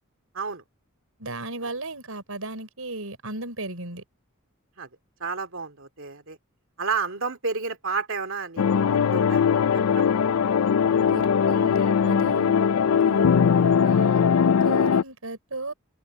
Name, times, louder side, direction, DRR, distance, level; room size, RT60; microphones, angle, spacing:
voice 1, 1.2-4.0 10.9-12.6 12.9-14.2 14.6-15.7, right 2 dB, 80° right, 5.3 m, -36 dB
voice 2, 5.2-6.4 6.8-8.8 9.1-9.4 9.9-10.2, right 5 dB, 65° right, 2.5 m, -30 dB
sound 1, 8.6-15.0, left 7 dB, 85° left, 0.4 m, -20 dB
head